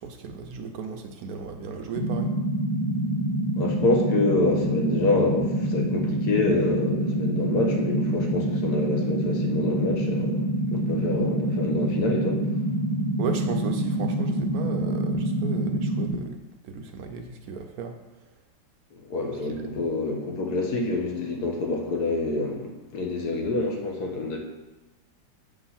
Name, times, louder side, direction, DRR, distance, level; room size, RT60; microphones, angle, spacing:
voice 1, 0.0-2.3 13.2-16.4 16.6-17.9 19.5-19.7, right 5 dB, 70° right, 4 dB, 1.0 m, -35 dB
sound 1, 1.9-16.1, right 1 dB, 25° left, 1.1 m, -26 dB
voice 2, 3.6-12.4 19.1-24.4, left 2 dB, 65° left, 1 dB, 1.5 m, -27 dB
7.4 x 3.2 x 5.6 m, 1.1 s
omnidirectional pair, 1.8 m